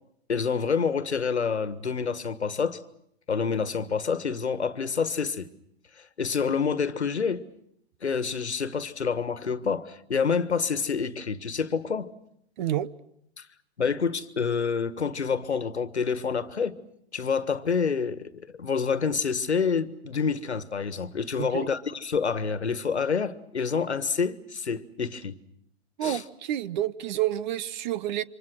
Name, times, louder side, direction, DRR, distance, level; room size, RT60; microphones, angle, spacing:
voice 1, 0.3-2.8 3.3-5.5 6.0-7.4 8.0-12.1 13.4-13.5 13.8-16.8 17.1-18.3 18.6-25.4 26.0-26.2, left 5 dB, 90° left, 1.6 m, -27 dB
voice 2, 12.6-12.9 21.4-21.7 26.0-28.2, right 12 dB, 45° right, 1.1 m, -29 dB
28.5 x 25.5 x 6.2 m
hypercardioid pair, 120°, 32 cm